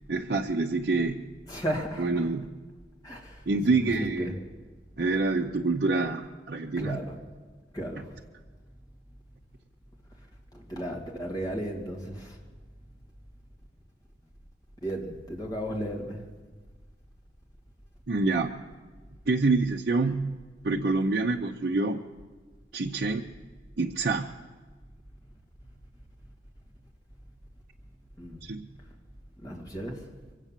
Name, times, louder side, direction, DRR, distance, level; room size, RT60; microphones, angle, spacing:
voice 1, 0.1-1.3 2.0-2.5 3.5-4.3 5.0-7.0 18.1-18.5 19.3-20.4 20.6-22.0 22.7-23.3 23.8-24.3 28.4-28.6, right 3 dB, 60° right, 1 dB, 0.7 m, -26 dB
voice 2, 1.5-2.3 3.0-4.4 6.8-7.2 7.7-8.1 10.5-12.4 14.8-16.2 28.2-28.4 29.4-30.0, equal, 20° left, -1 dB, 2.4 m, -35 dB
23.5 x 8.2 x 7.4 m, 1.4 s
head